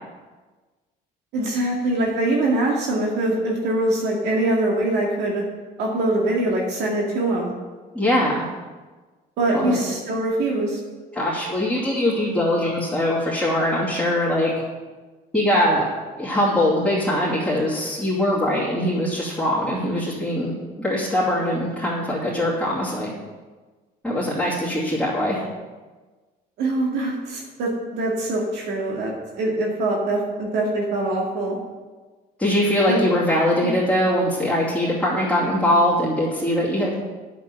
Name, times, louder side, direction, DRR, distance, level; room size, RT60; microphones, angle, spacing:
voice 1, 1.3-5.4 5.8-7.5 9.4-10.8 26.6-31.6 32.9-33.0 33.6-33.7, right 2 dB, 85° right, -2 dB, 2.1 m, -23 dB
voice 2, 7.9-8.5 9.5-9.8 11.1-14.5 15.3-15.8 16.2-20.5 20.8-23.1 24.0-25.4 32.4-36.9, left 1 dB, 5° left, -9 dB, 2.5 m, -22 dB
8.4 x 7.3 x 7.6 m, 1.3 s
cardioid pair, 110°, 17 cm